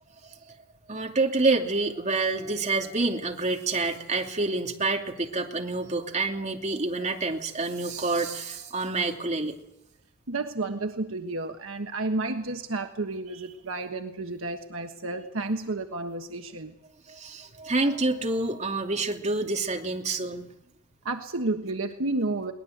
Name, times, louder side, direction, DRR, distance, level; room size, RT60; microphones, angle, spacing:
voice 1, 0.9-9.6 17.1-20.5, right 3 dB, 30° right, 2 dB, 2.7 m, -27 dB
voice 2, 10.3-16.7 21.0-22.5, right 2 dB, 65° right, 5 dB, 1.4 m, -31 dB
22.5 x 19.5 x 8.0 m, 0.84 s
head